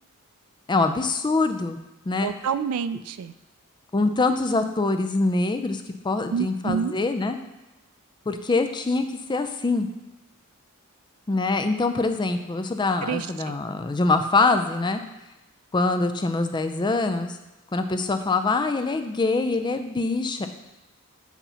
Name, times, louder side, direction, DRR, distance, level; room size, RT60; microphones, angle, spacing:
voice 1, 0.7-1.8 2.1-2.3 3.9-7.4 8.3-9.9 11.3-15.0 15.7-17.4 17.7-20.5, left 3 dB, 20° left, 7 dB, 0.4 m, -24 dB
voice 2, 2.2-3.3 6.3-6.9 13.0-13.6, right 7 dB, 70° right, 14 dB, 0.3 m, -28 dB
8.2 x 2.9 x 5.5 m, 1.0 s
head